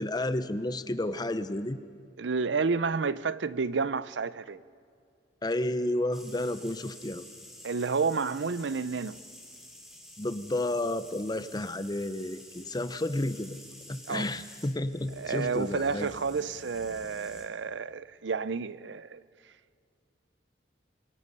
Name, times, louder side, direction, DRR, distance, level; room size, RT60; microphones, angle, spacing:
voice 1, 0.0-1.8 5.4-7.3 10.2-13.6 13.9-16.1, left 1 dB, 25° left, 0.8 m, -31 dB
voice 2, 2.2-4.6 7.6-9.2 14.1-14.2 15.2-19.2, right 5 dB, 85° right, 0.6 m, -30 dB
sound 1, 6.1-17.5, left 1 dB, 5° right, 3.4 m, -50 dB
26.0 x 23.0 x 5.5 m
head